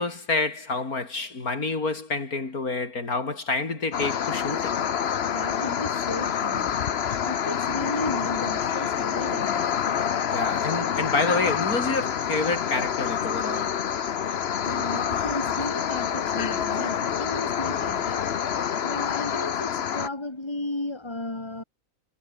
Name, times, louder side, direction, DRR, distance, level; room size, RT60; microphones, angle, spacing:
voice 1, 0.0-4.7 10.3-13.8, left 3 dB, 80° left, 4.2 m, -28 dB
sound 1, 3.9-20.1, left 8 dB, 50° left, 1.0 m, -27 dB
voice 2, 5.2-6.8 7.2-9.8 14.7-21.6, left 2 dB, 20° left, 2.8 m, -34 dB
omnidirectional pair, 1.5 m